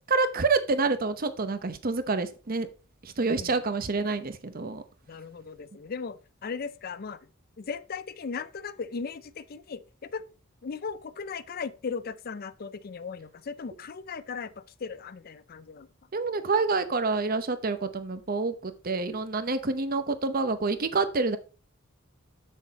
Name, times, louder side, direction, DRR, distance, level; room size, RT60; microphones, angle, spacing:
voice 1, 0.1-2.7 3.0-4.8 16.1-21.4, right 3 dB, 45° right, 0.8 m, -27 dB
voice 2, 5.1-7.2 7.6-9.8 10.1-10.2 10.6-14.5 14.8-15.9, left 5 dB, 45° left, 0.4 m, -37 dB
7.4 x 6.4 x 4.0 m
head